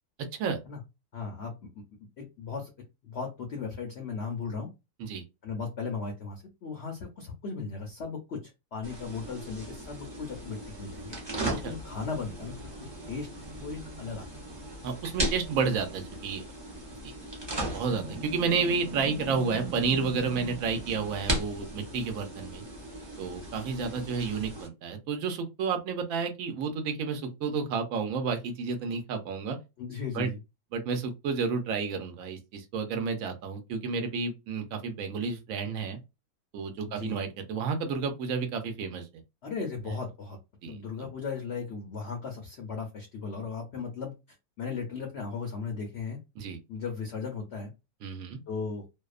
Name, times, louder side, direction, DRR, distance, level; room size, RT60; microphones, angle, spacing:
voice 1, 1.1-1.8 2.2-2.7 3.0-4.7 5.4-11.2 11.5-12.6 13.1-14.3 29.8-30.4 36.8-37.2 39.4-40.4 40.7-44.1 44.6-46.2 46.7-47.7 48.5-48.9, left 5 dB, 60° left, 0.7 m, -36 dB
sound 1, 8.8-24.7, right 1 dB, 35° right, 0.4 m, -37 dB
voice 2, 14.8-16.5 17.0-17.1 17.7-22.6 23.2-29.6 30.1-30.3 30.7-36.0 36.5-39.1 40.6-40.8 46.4-46.6 48.0-48.4, right 5 dB, 65° right, 1.0 m, -31 dB
2.7 x 2.1 x 2.3 m
omnidirectional pair, 1.7 m